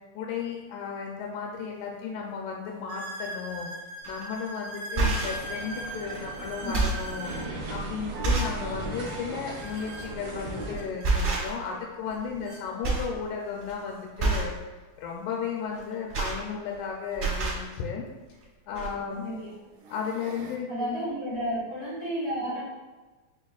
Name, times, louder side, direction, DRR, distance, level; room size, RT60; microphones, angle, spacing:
voice 1, 0.2-3.7 4.1-7.3 7.7-18.1 18.7-19.3 19.9-20.9, left 6 dB, 80° left, 0 dB, 1.9 m, -34 dB
sound 1, 1.2-1.3 1.9-2.0 2.9-7.5 9.5-11.1 12.1-12.2 12.5-12.6 13.4-13.5 15.7-15.8 17.9-18.0 18.8-19.1 19.6-20.6, right 1 dB, 80° right, 2.0 m, -40 dB
sound 2, 4.0-4.2 4.8-5.5 6.1-6.2 6.6-7.1 7.7-7.8 8.2-8.6 9.0-9.2 10.4-10.6 11.0-11.8 12.1-12.5 12.8-13.1 13.5-13.7 14.2-14.6 15.7-16.8 17.1-17.6 18.4-18.5 18.7-18.9, right 3 dB, 40° right, 1.3 m, -28 dB
sound 3, 5.0-10.9, right 2 dB, 65° right, 1.6 m, -38 dB
voice 2, 19.1-19.5 20.7-22.7, equal, 55° left, -10 dB, 0.7 m, -32 dB
6.4 x 3.2 x 2.3 m, 1.2 s
omnidirectional pair, 3.7 m